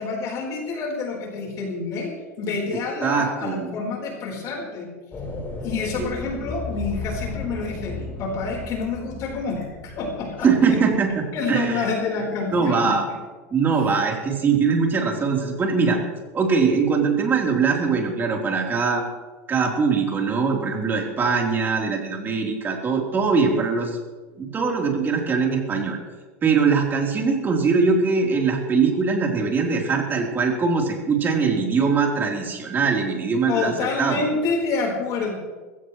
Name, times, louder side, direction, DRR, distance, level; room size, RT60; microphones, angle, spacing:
voice 1, 0.0-2.1 2.4-4.9 5.6-10.8 11.3-12.9 33.5-35.3, left 4 dB, 45° left, 0 dB, 4.2 m, -28 dB
voice 2, 3.0-3.7 6.0-6.1 10.4-11.9 12.5-13.0 13.5-16.0 16.3-19.1 19.5-24.0 24.4-26.0 26.4-34.3, right 5 dB, 25° right, 0 dB, 3.7 m, -22 dB
sound 1, 5.1-11.3, left 3 dB, 25° left, 4.4 m, -35 dB
21.0 x 16.0 x 3.2 m, 1.3 s
supercardioid pair, 115°, 8 cm